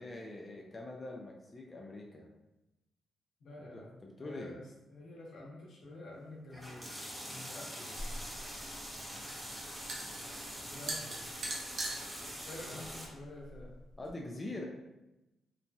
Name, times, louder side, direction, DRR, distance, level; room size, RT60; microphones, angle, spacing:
voice 1, 0.0-2.3 3.7-4.6 14.0-14.7, left 2 dB, 30° left, 0 dB, 0.4 m, -44 dB
voice 2, 3.4-6.9 7.3-8.2 10.6-11.5 12.5-13.8, left 1 dB, 80° left, -3 dB, 0.8 m, -49 dB
sound 1, 6.5-13.1, equal, 5° right, 0.7 m, -44 dB
sound 2, 7.9-14.1, right 2 dB, 70° right, 0.7 m, -43 dB
2.9 x 2.6 x 2.2 m, 0.98 s
cardioid pair, 85°, 0 cm